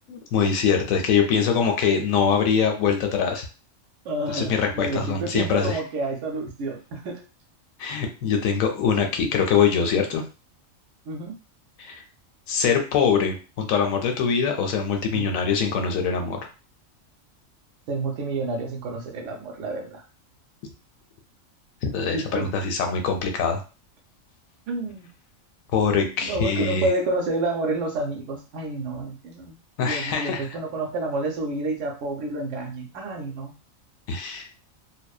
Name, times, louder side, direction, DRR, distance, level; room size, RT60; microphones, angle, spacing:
voice 1, 0.1-3.5 4.3-5.8 7.8-10.2 11.8-12.0 12.5-16.4 21.9-23.6 25.7-26.9 29.8-30.4 34.1-34.5, left 6 dB, 80° left, 4 dB, 1.0 m, -23 dB
voice 2, 4.0-7.2 11.1-11.4 15.1-15.3 17.9-20.0 22.1-22.5 24.7-25.1 26.2-29.6 29.8-33.5, right 2 dB, 70° right, 3 dB, 0.8 m, -29 dB
2.7 x 2.0 x 2.3 m, 0.33 s
omnidirectional pair, 1.4 m